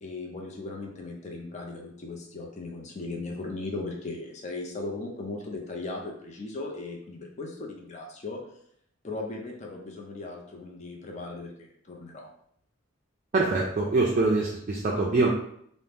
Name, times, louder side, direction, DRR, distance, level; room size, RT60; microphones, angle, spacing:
voice 1, 0.0-8.4 9.0-12.3, left 2 dB, 35° left, 0 dB, 0.5 m, -37 dB
voice 2, 13.3-15.3, right 3 dB, 40° right, -3 dB, 0.4 m, -24 dB
2.7 x 2.0 x 3.3 m, 0.69 s
head